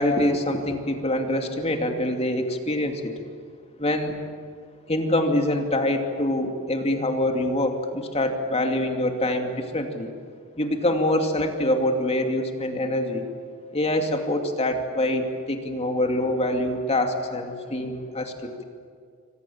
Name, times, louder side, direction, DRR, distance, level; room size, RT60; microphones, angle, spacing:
voice 1, 0.0-3.1 3.8-4.2 4.9-10.1 10.6-13.2 13.7-18.6, left 1 dB, 30° left, 4 dB, 2.6 m, -25 dB
28.0 x 25.0 x 7.3 m, 2.2 s
head